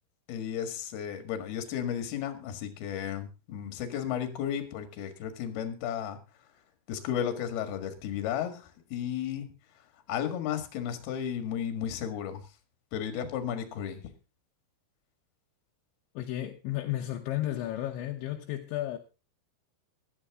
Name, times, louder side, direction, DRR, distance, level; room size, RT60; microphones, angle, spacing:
voice 1, 0.3-6.2 6.9-9.5 10.1-12.4 12.9-14.0, left 9 dB, 60° left, 3.4 m, -34 dB
voice 2, 16.2-19.0, left 13 dB, 80° left, 3.2 m, -33 dB
15.5 x 12.0 x 3.6 m
omnidirectional pair, 5.5 m